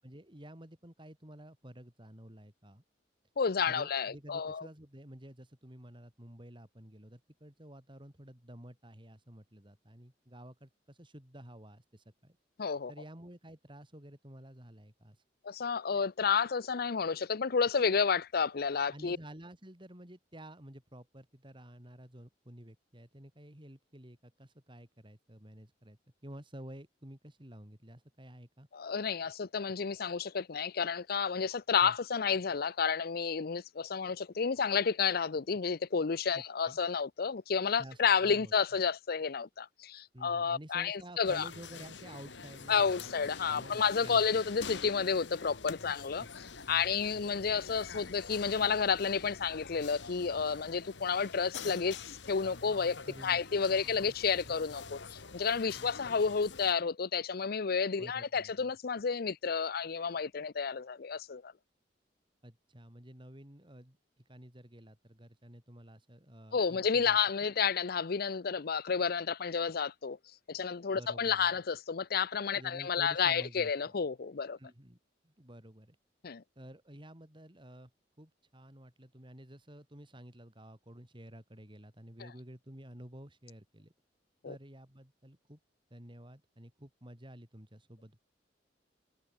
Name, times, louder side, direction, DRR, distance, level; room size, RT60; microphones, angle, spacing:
voice 1, 0.0-2.8 3.7-12.4 12.9-15.2 18.9-28.7 31.8-32.0 36.3-36.8 37.8-38.5 40.1-43.1 43.5-44.2 46.2-46.3 46.7-47.6 53.0-54.1 54.5-54.6 54.9-55.0 55.7-56.2 58.0-58.7 62.4-67.5 70.9-71.6 72.5-73.9 74.6-75.0 75.2-76.0 76.6-77.9 78.2-83.9 84.4-85.6 85.9-88.2, right 1 dB, 30° right, 3.6 m, -51 dB
voice 2, 3.4-4.7 12.6-12.9 15.4-19.2 28.7-41.5 42.7-46.3 46.7-61.5 66.5-70.2 70.5-74.6 76.2-76.4 84.4-84.5, left 6 dB, 55° left, 0.6 m, -31 dB
sound 1, 41.2-56.7, left 5 dB, 80° left, 1.7 m, -47 dB
head